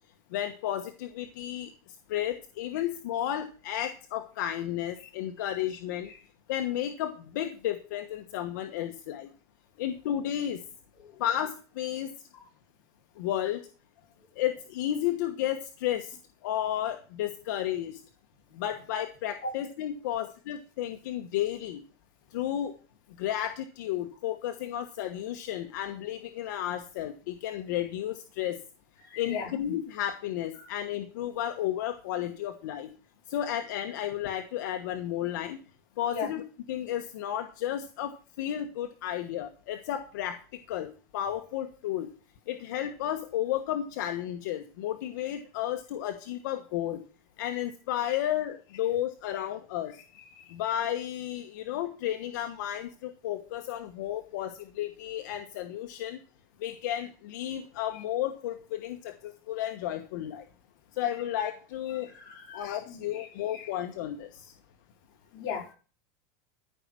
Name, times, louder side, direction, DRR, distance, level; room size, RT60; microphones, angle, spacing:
voice 1, 0.3-1.7 2.1-6.1 6.5-9.3 9.8-10.6 11.2-12.1 13.2-13.6 14.4-16.2 16.4-18.0 18.5-21.8 22.3-22.7 23.2-28.6 29.2-32.9 33.3-35.6 36.0-36.4 36.7-38.1 38.4-40.4 40.7-40.9 41.1-42.1 42.5-47.0 47.4-50.0 50.5-56.2 56.6-60.4 61.0-62.1 62.5-64.5, left 11 dB, 75° left, 6 dB, 1.2 m, -32 dB
voice 2, 29.0-29.5 30.6-30.7 36.1-36.3 50.2-50.5 62.0-63.3 63.5-63.7 65.3-65.7, left 5 dB, 45° left, -1 dB, 4.8 m, -38 dB
14.0 x 5.7 x 6.1 m, 0.37 s
supercardioid pair, 160°, 10 cm